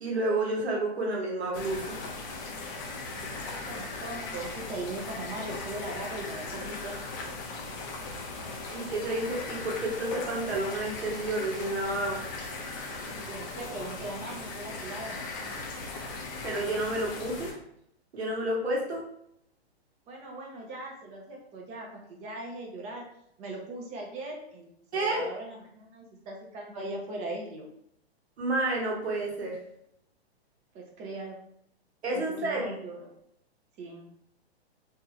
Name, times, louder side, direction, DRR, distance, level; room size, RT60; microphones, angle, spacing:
voice 1, 0.0-2.0 8.7-12.2 16.4-17.5 18.1-19.0 24.9-25.2 28.4-29.6 32.0-32.7, right 2 dB, 80° right, -2 dB, 1.2 m, -30 dB
sound 1, 1.5-17.5, left 3 dB, 20° left, 0.3 m, -38 dB
voice 2, 3.2-7.0 13.1-15.2 20.1-23.0 23.4-27.7 30.7-31.4 32.1-33.1 33.8-34.1, right 2 dB, 20° right, 0 dB, 0.6 m, -39 dB
3.1 x 2.6 x 2.4 m, 0.74 s
hypercardioid pair, 130°, 32 cm